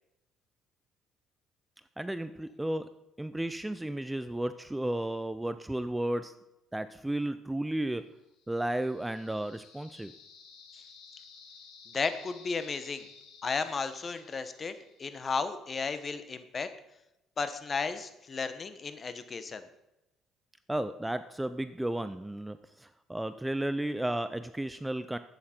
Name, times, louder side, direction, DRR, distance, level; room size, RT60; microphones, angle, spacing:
voice 1, 2.0-6.3 6.7-8.1 8.5-10.1 20.7-25.2, right 1 dB, 5° right, 12 dB, 0.4 m, -33 dB
sound 1, 8.3-15.2, left 5 dB, 90° left, 2.5 m, -55 dB
voice 2, 11.9-13.0 13.4-16.7 17.4-19.6, left 4 dB, 30° left, 11 dB, 1.0 m, -34 dB
11.5 x 8.7 x 4.4 m, 0.90 s
cardioid pair, 110°, 0 cm